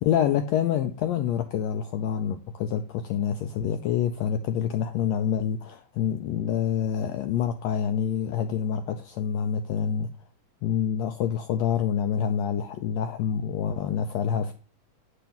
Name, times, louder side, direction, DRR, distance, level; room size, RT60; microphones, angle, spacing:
voice 1, 0.0-10.1 10.6-14.5, left 8 dB, 85° left, 1.5 m, -27 dB
8.6 x 4.5 x 3.4 m
omnidirectional pair, 3.7 m